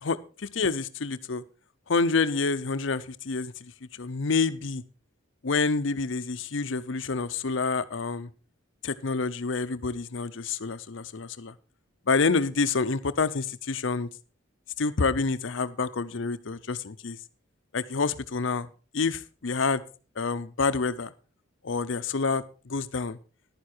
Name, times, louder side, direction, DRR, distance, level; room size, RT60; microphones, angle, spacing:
voice 1, 0.0-1.4 1.9-3.7 4.0-4.8 5.4-8.3 8.8-11.5 12.1-14.1 14.8-17.2 17.7-18.7 18.9-19.8 20.2-21.1 21.6-23.2, left 4 dB, 65° left, 14 dB, 0.7 m, -28 dB
11.0 x 9.6 x 4.4 m, 0.36 s
head